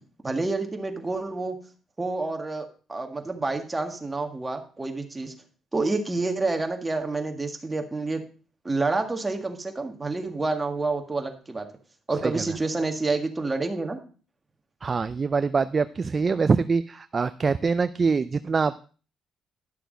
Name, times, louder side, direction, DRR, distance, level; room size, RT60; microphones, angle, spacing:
voice 1, 0.2-1.6 2.0-5.3 5.7-8.2 8.6-11.7 12.1-14.0, right 3 dB, 20° right, 5 dB, 1.8 m, -28 dB
voice 2, 14.8-18.8, right 5 dB, 35° right, 13 dB, 0.4 m, -24 dB
11.5 x 6.7 x 5.1 m, 0.39 s
cardioid pair, 90°, 0 cm